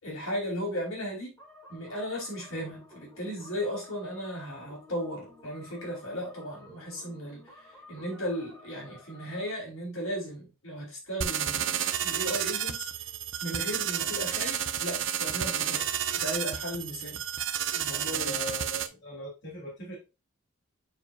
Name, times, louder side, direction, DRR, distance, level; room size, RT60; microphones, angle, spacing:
voice 1, 0.0-1.3 1.7-12.9 13.4-15.9 16.2-17.2 17.7-18.4, equal, 80° left, 4.2 m, -36 dB
sound 1, 1.4-9.5, left 1 dB, 10° left, 2.1 m, -53 dB
sound 2, 11.2-18.9, right 9 dB, 60° right, 0.6 m, -31 dB
voice 2, 18.1-20.0, equal, 55° left, 3.2 m, -39 dB
8.9 x 4.8 x 2.5 m
head